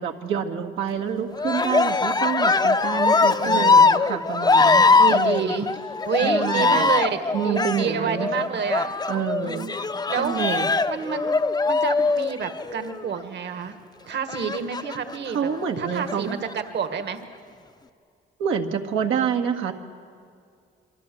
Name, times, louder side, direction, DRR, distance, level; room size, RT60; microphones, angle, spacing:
voice 1, 0.0-5.6 6.2-6.9 7.3-8.5 9.1-9.7 10.2-10.7 15.3-16.4 18.4-19.7, right 7 dB, 85° right, 3 dB, 1.9 m, -27 dB
Cheering, 1.3-13.0 14.3-15.2 15.9-16.5, left 4 dB, 20° left, 0.7 m, -21 dB
voice 2, 3.4-3.9 5.0-5.7 6.0-8.9 9.4-9.7 10.1-10.4 10.9-11.3 11.7-13.8 14.1-15.5 15.8-17.2, right 6 dB, 60° right, 8 dB, 1.9 m, -28 dB
26.0 x 24.0 x 7.9 m, 2.3 s
cardioid pair, 90°, 20 cm